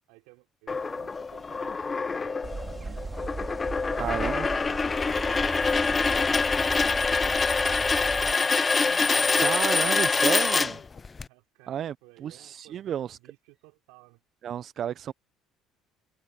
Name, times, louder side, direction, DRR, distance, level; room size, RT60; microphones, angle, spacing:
voice 1, 0.1-3.3 3.7-7.3 7.7-9.9 11.3-14.2, right 25 dB, 80° right, 4.3 m, -55 dB
sound 1, 0.7-11.2, left 4 dB, 25° left, 0.7 m, -25 dB
sound 2, 1.5-2.3 3.1-3.5 3.9-4.3 4.8-4.9 5.2-5.3 5.9-7.4 9.6-9.9 10.2-11.0, left 7 dB, 45° left, 2.6 m, -49 dB
sound 3, 2.4-8.4, right 4 dB, 25° right, 3.4 m, -37 dB
voice 2, 4.0-4.5 9.4-10.8 11.7-11.9 12.2-13.2 14.4-15.1, right 9 dB, 50° right, 0.6 m, -32 dB
supercardioid pair, 75°, 0 cm